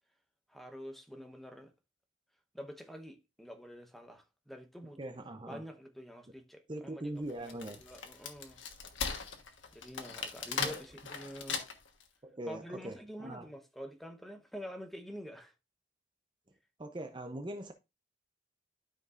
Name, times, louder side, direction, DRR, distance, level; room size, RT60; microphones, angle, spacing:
voice 1, 0.5-1.7 2.5-8.6 9.7-11.6 12.5-15.5, equal, ahead, 0.9 m, -47 dB
voice 2, 5.0-5.6 6.7-7.8 10.6-10.8 12.2-13.5 16.8-17.7, right 1 dB, 25° right, 0.6 m, -41 dB
Wood, 7.3-12.0, left 6 dB, 80° left, 1.3 m, -39 dB
12.0 x 5.3 x 2.5 m
head